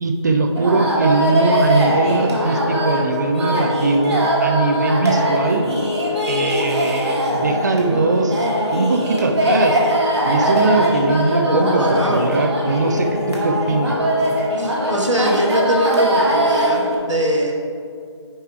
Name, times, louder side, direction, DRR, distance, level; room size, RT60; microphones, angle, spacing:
voice 1, 0.0-5.7 6.3-9.8 10.2-14.0, right 3 dB, 40° right, 6 dB, 0.6 m, -20 dB
sound 1, 0.5-16.9, equal, 65° right, 1.8 m, -21 dB
voice 2, 11.4-12.3 14.6-17.5, right 1 dB, 85° right, 1 dB, 1.5 m, -21 dB
9.8 x 3.3 x 5.6 m, 2.2 s
figure-of-eight pair, 160°, 15 cm